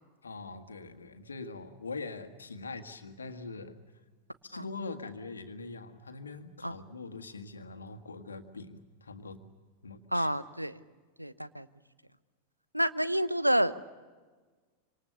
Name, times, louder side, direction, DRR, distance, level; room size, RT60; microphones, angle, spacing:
voice 1, 0.2-3.7 4.4-9.4 9.8-10.3, left 3 dB, 75° left, 8 dB, 1.8 m, -43 dB
voice 2, 10.1-10.8 11.2-11.7 12.7-13.7, equal, 90° right, 14 dB, 0.9 m, -28 dB
26.5 x 26.5 x 6.9 m, 1.4 s
figure-of-eight pair, 90°, 0 cm